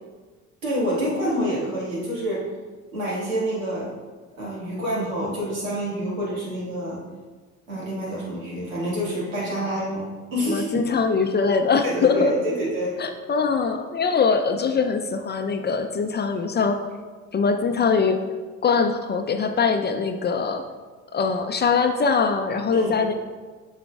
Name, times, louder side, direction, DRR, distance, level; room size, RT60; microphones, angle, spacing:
voice 1, 0.6-2.4 2.9-4.0 4.3-7.0 7.7-10.8 11.8-13.0 22.7-23.0, equal, 85° right, -6 dB, 2.1 m, -27 dB
voice 2, 10.5-12.3 13.0-16.8 17.3-18.2 18.6-20.6 21.1-23.1, left 5 dB, 25° left, 6 dB, 0.5 m, -22 dB
8.4 x 5.9 x 2.4 m, 1.4 s
hypercardioid pair, 55°, 40 cm